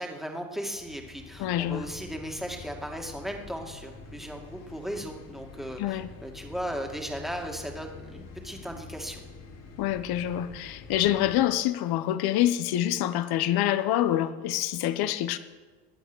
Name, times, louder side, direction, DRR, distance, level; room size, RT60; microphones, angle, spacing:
voice 1, 0.0-9.2, equal, ahead, 2.2 m, -37 dB
sound 1, 0.7-11.4, left 4 dB, 75° left, 4.0 m, -46 dB
voice 2, 1.4-1.9 5.8-6.1 9.8-15.4, left 12 dB, 60° left, 1.1 m, -26 dB
21.0 x 7.9 x 6.3 m
supercardioid pair, 95°, 44 cm